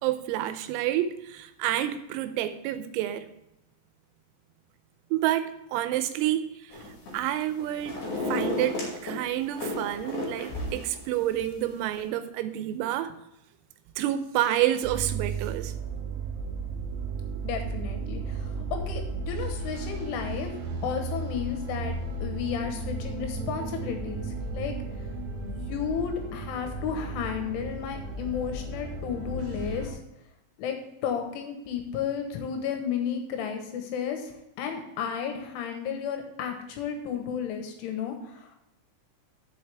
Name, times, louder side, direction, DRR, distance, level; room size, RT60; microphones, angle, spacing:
voice 1, 0.0-3.3 5.1-6.8 7.1-8.0 8.3-13.1 14.0-15.7, right 12 dB, 90° right, 3.4 m, -29 dB
sound 1, 6.7-7.2 7.6-9.2 9.6-11.0 11.4-11.5, left 1 dB, 45° left, 3.3 m, -32 dB
sound 2, 14.8-29.9, right 3 dB, 65° right, 4.3 m, -34 dB
voice 2, 17.4-20.6 20.8-24.7 25.4-30.0 30.6-30.8 31.0-38.6, left 7 dB, 75° left, 3.5 m, -33 dB
10.5 x 7.4 x 3.5 m
omnidirectional pair, 5.9 m